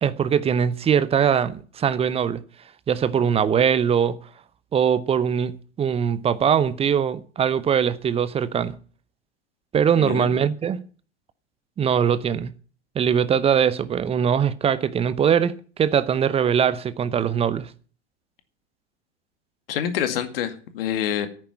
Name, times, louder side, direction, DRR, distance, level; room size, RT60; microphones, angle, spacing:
voice 1, 0.0-2.4 2.9-4.2 4.7-8.8 9.7-10.8 11.8-12.5 12.9-17.7, right 8 dB, 15° right, 0.8 m, -21 dB
voice 2, 10.0-10.3 19.7-21.3, left 9 dB, 55° left, 2.1 m, -26 dB
10.5 x 9.1 x 9.7 m
figure-of-eight pair, 85°, 34 cm